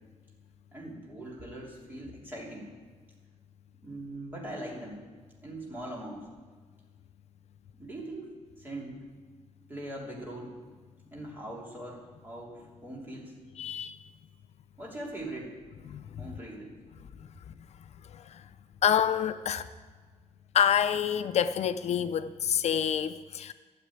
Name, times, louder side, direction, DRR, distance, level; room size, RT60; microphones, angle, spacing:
voice 1, 0.7-2.7 3.8-5.0 5.4-6.3 7.8-9.0 9.7-10.5 11.1-13.4 14.8-15.6 16.2-16.8, right 1 dB, 15° right, 3.0 m, -41 dB
voice 2, 13.6-14.0 15.9-16.0 18.3-18.4 18.8-19.6 20.5-23.5, left 9 dB, 65° left, 0.4 m, -27 dB
13.5 x 7.4 x 8.5 m
wide cardioid pair, 180°, 12 cm